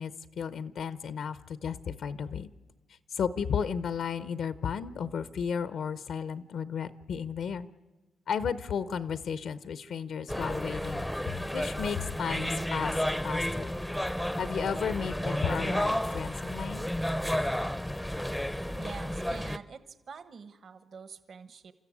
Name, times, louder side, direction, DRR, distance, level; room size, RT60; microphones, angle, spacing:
voice 1, 0.0-2.5 2.9-7.7 8.3-13.0 13.2-13.7 14.4-16.9, left 7 dB, 65° left, 14 dB, 0.7 m, -34 dB
sound 1, 10.3-19.6, equal, 5° left, 0.6 m, -32 dB
voice 2, 18.7-19.8 20.1-21.7, right 5 dB, 50° right, 12 dB, 1.3 m, -45 dB
29.0 x 13.5 x 8.5 m, 1.1 s
cardioid pair, 120°, 0 cm